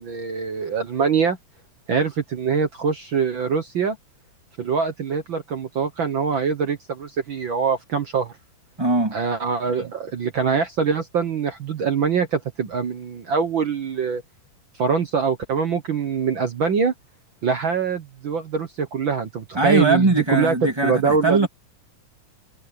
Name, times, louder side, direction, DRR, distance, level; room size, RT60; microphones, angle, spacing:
voice 1, 0.0-1.4 1.9-4.0 4.6-8.3 9.1-14.2 14.8-16.9 17.4-21.5, right 6 dB, 60° right, 1.3 m, -23 dB
voice 2, 8.8-9.1 19.5-21.5, right 2 dB, 10° right, 2.4 m, -20 dB
omnidirectional pair, 3.7 m